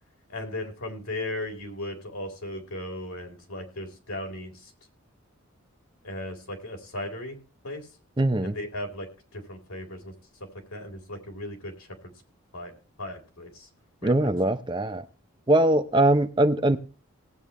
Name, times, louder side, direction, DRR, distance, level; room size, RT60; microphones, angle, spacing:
voice 1, 0.3-4.7 6.0-7.4 7.6-7.9 8.4-10.2 10.7-12.1 12.5-12.7 13.0-13.7 14.0-14.1, left 1 dB, 90° left, 3.8 m, -36 dB
voice 2, 8.2-8.6 14.0-15.1 15.5-16.8, right 1 dB, 20° right, 0.6 m, -22 dB
18.5 x 8.5 x 3.1 m
head